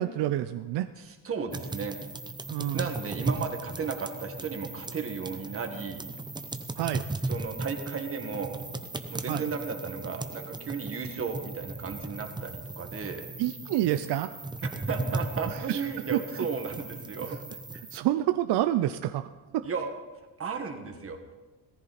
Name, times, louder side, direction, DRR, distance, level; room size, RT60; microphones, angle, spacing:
voice 1, 0.0-0.9 2.5-2.9 6.8-7.0 9.3-9.5 13.4-14.3 15.5-16.5 17.9-19.3 19.5-19.6, right 13 dB, 70° right, 10 dB, 0.6 m, -28 dB
voice 2, 1.0-2.1 2.7-6.0 7.3-8.6 9.1-13.3 14.6-17.4 19.6-19.9 20.4-21.2, right 5 dB, 30° right, 4 dB, 1.7 m, -34 dB
sound 1, 1.5-18.0, right 2 dB, 10° right, 0.6 m, -37 dB
18.0 x 14.5 x 4.2 m, 1.2 s
cardioid pair, 150°, 43 cm